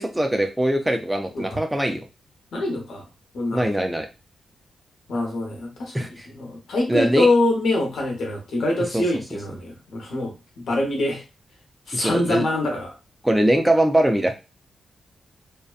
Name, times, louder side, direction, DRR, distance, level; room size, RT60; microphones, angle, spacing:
voice 1, 0.0-2.0 3.5-4.1 5.9-6.3 6.9-7.3 8.9-9.0 11.9-12.4 13.2-14.4, right 1 dB, 10° right, 5 dB, 0.4 m, -21 dB
voice 2, 2.5-3.1 3.3-3.7 5.1-11.2 11.9-12.9, left 2 dB, 75° left, 1 dB, 0.9 m, -24 dB
2.7 x 2.1 x 2.3 m, 0.29 s
cardioid pair, 110°, 0 cm